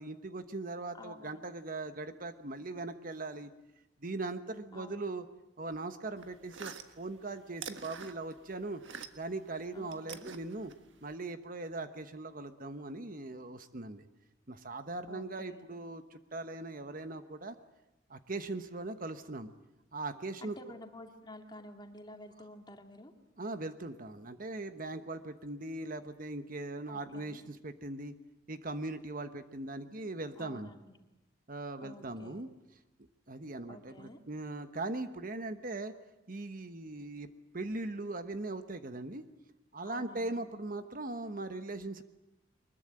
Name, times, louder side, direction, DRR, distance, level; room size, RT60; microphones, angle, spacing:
voice 1, 0.0-3.5 4.0-5.2 5.6-8.8 9.1-10.7 11.0-14.0 14.5-17.5 18.1-19.5 19.9-20.6 23.4-28.1 28.5-30.7 31.5-32.5 33.3-35.9 36.3-37.3 37.5-39.2 39.7-42.0, right 2 dB, 50° right, 9 dB, 1.2 m, -40 dB
voice 2, 0.9-1.4 4.7-5.0 9.7-10.3 15.1-15.6 20.4-23.1 26.9-27.4 30.4-31.0 31.8-32.4 33.7-34.2 39.8-40.3, left 1 dB, 25° left, 4 dB, 2.5 m, -51 dB
sound 1, 6.2-9.4 9.7-11.1, right 6 dB, 85° right, 1.6 m, -47 dB
23.5 x 21.5 x 8.9 m, 0.95 s
head